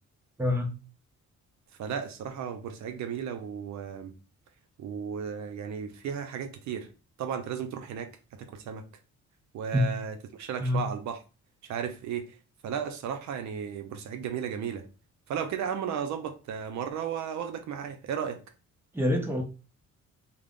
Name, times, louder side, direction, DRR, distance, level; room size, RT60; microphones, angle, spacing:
voice 1, 0.4-0.7 9.7-9.8 10.6-10.9 18.9-19.4, left 1 dB, 10° right, 0.6 m, -26 dB
voice 2, 1.8-4.1 4.8-6.9 7.2-8.8 9.5-11.2 11.6-12.3 12.6-14.8 15.3-18.4, right 7 dB, 70° right, 0.5 m, -34 dB
2.3 x 2.0 x 3.4 m
cardioid pair, 90°, 30 cm